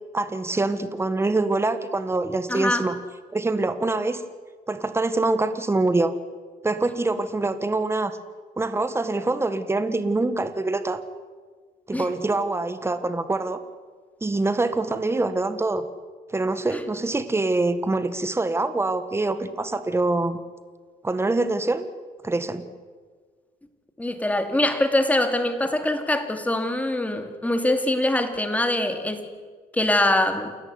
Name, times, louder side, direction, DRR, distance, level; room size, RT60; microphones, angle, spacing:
voice 1, 0.1-2.9 3.3-4.2 4.7-6.1 6.6-8.2 8.6-11.0 11.9-13.6 14.2-15.8 16.3-20.4 21.0-21.9 22.2-22.6, right 2 dB, 15° right, 12 dB, 1.6 m, -25 dB
voice 2, 2.5-2.8 11.9-12.1 16.7-16.8 24.0-29.3 29.7-30.5, left 1 dB, 10° left, 7 dB, 2.8 m, -23 dB
28.5 x 14.0 x 9.7 m, 1.5 s
cardioid pair, 110°, 17 cm